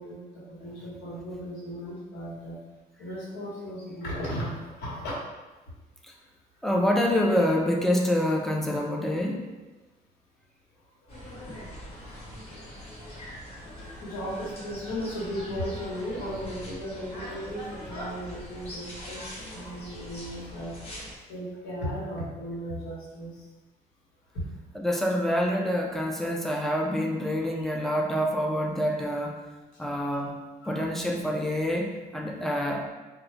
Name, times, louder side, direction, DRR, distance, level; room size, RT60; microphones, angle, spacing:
voice 1, 0.0-2.6 3.0-5.1 14.0-20.8 21.3-23.4 24.3-24.5 27.6-27.7 30.1-30.2 30.6-30.9, equal, 85° left, -6 dB, 1.0 m, -36 dB
voice 2, 6.6-9.5 24.8-29.4 29.8-30.4 30.6-32.9, equal, ahead, 0 dB, 0.3 m, -26 dB
sound 1, 11.1-21.2, equal, 35° left, 1.0 m, -42 dB
2.3 x 2.0 x 3.1 m, 1.2 s
cardioid pair, 110°, 17 cm